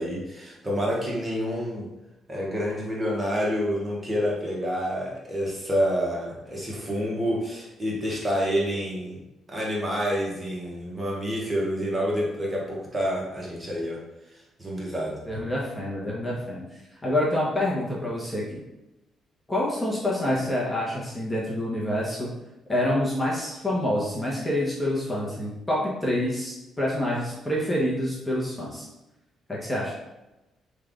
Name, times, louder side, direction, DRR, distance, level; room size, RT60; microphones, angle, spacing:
voice 1, 0.0-1.9 2.3-9.2 9.5-14.0 14.6-15.2, equal, 20° right, -5 dB, 1.1 m, -28 dB
voice 2, 15.3-18.6 19.5-22.3 22.7-28.9 29.5-29.9, left 1 dB, 15° left, -5 dB, 0.9 m, -27 dB
3.3 x 2.4 x 3.6 m, 0.97 s
cardioid pair, 90°, 0 cm